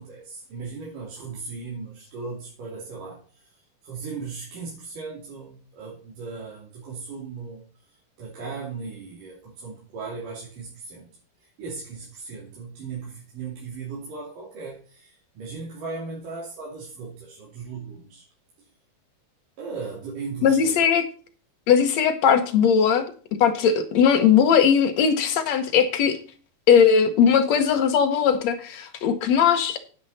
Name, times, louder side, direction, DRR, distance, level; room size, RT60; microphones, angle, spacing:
voice 1, 0.0-3.2 3.8-7.6 8.2-11.1 11.4-18.2 19.6-20.9, right 4 dB, 55° right, -4 dB, 4.3 m, -37 dB
voice 2, 20.4-21.0 21.7-23.1 23.4-26.2 26.7-29.8, left 7 dB, 75° left, 7 dB, 1.6 m, -19 dB
9.9 x 9.4 x 4.2 m, 0.40 s
omnidirectional pair, 4.5 m